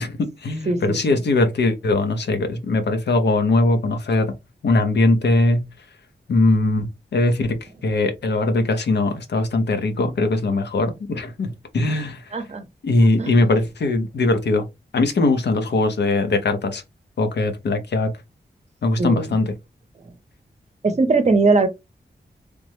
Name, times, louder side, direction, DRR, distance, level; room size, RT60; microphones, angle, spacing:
voice 1, 0.0-4.3 4.6-5.7 6.3-12.3 12.8-14.6 14.9-16.8 17.2-18.1 18.8-19.5, left 2 dB, 90° left, 0.7 m, -20 dB
voice 2, 0.7-1.2 12.3-12.6 13.2-13.3 19.0-19.3 20.8-21.7, right 3 dB, 40° right, 0.6 m, -20 dB
3.3 x 2.0 x 3.0 m
wide cardioid pair, 115°, 17 cm